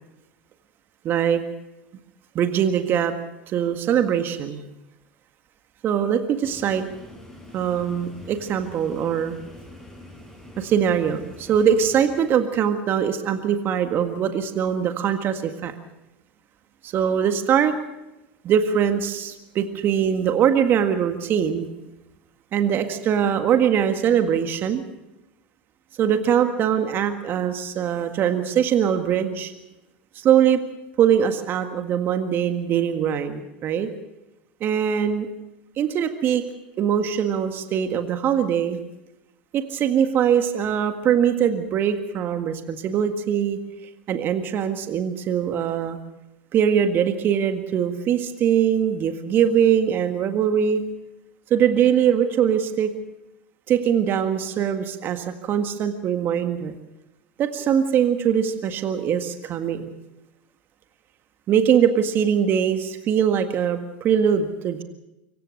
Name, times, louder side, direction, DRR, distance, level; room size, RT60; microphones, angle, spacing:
voice 1, 1.0-1.4 2.4-3.1 3.5-4.6 5.8-6.9 7.5-9.4 10.6-15.7 16.8-17.8 18.4-21.7 22.5-24.8 26.0-29.5 30.2-30.6 31.0-33.9 34.6-35.3 35.8-36.4 36.8-38.8 39.5-43.6 44.1-46.0 46.5-50.8 51.5-52.9 53.7-56.8 57.4-59.8 61.5-64.8, right 8 dB, 40° right, 7 dB, 1.8 m, -22 dB
sound 1, 6.4-12.2, left 1 dB, 5° left, 6.5 m, -45 dB
25.0 x 16.0 x 6.6 m, 0.96 s
hypercardioid pair, 85°, 5 cm